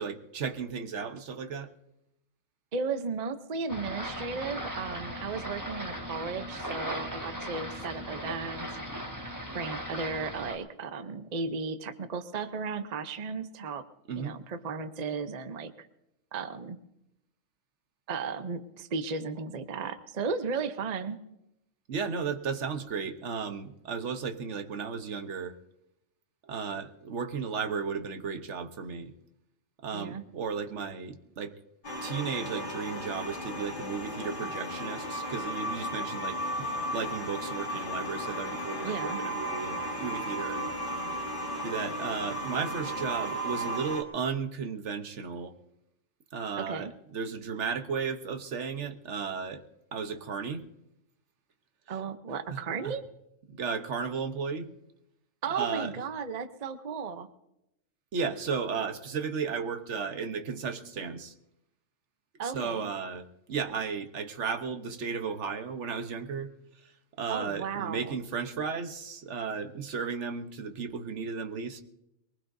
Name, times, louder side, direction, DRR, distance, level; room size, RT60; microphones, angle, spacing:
voice 1, 0.0-1.7 14.1-14.4 21.9-25.5 26.5-29.1 29.8-31.6 32.0-40.7 41.6-45.5 46.3-49.6 49.9-50.7 52.5-53.0 53.5-54.7 55.5-55.9 58.1-61.3 62.4-66.5 66.8-66.9 67.2-71.8, right 5 dB, 60° right, 7 dB, 1.3 m, -34 dB
voice 2, 2.7-9.0 9.5-13.8 14.2-15.9 16.3-16.8 18.1-21.2 29.9-30.2 38.8-39.2 46.6-46.9 51.9-53.0 55.4-57.3 62.4-62.9 67.3-68.2, right 5 dB, 40° right, 9 dB, 0.8 m, -35 dB
sound 1, 3.7-10.6, equal, 15° right, 1.8 m, -38 dB
sound 2, 31.8-44.0, equal, 40° left, 1.7 m, -35 dB
22.5 x 19.5 x 2.7 m, 0.85 s
omnidirectional pair, 1.4 m